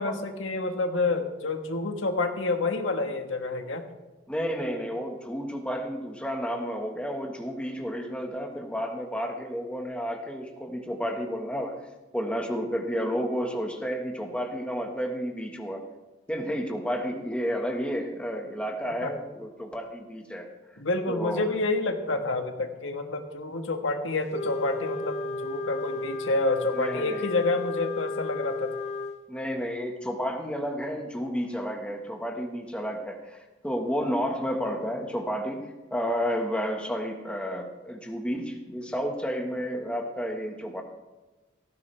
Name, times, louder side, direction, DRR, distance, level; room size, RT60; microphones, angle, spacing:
voice 1, 0.0-3.8 19.0-19.1 20.8-28.7, left 2 dB, 75° left, 5 dB, 1.5 m, -28 dB
voice 2, 4.3-11.8 12.1-15.8 16.3-20.5 21.1-21.6 26.7-27.3 29.3-40.8, equal, 5° left, 2 dB, 1.5 m, -31 dB
Wind instrument woodwind instrument, 24.3-29.2, left 2 dB, 35° left, 0.9 m, -34 dB
17.5 x 14.5 x 3.4 m, 1.1 s
head